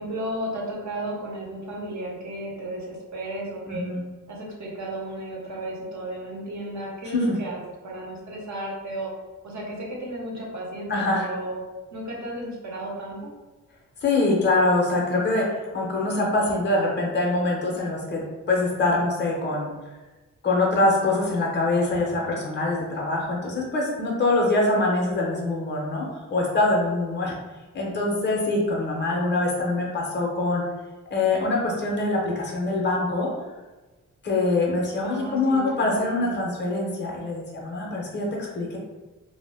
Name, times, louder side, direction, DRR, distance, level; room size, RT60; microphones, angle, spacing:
voice 1, 0.0-3.9 4.3-7.6 7.8-9.1 9.4-11.6 11.9-13.3 35.0-36.5, right 1 dB, 60° right, -3 dB, 0.9 m, -34 dB
voice 2, 3.7-4.0 7.1-7.4 10.9-11.3 14.0-15.5 15.7-18.2 18.5-19.7 20.4-27.4 27.7-30.6 31.1-33.3 34.2-38.8, left 2 dB, 35° left, -2 dB, 0.7 m, -24 dB
2.1 x 2.1 x 3.3 m, 1.2 s
cardioid pair, 70°, 33 cm